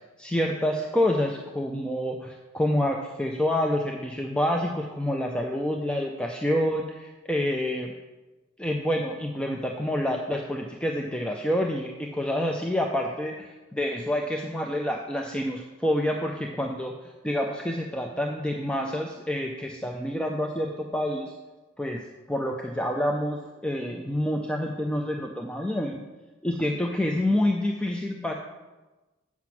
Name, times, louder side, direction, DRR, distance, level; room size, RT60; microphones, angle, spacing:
voice 1, 0.0-7.9 8.6-16.9 17.2-21.3 21.8-22.0 22.3-26.0 26.4-28.3, left 1 dB, 5° left, 1 dB, 0.4 m, -28 dB
7.8 x 5.9 x 5.8 m, 1.2 s
head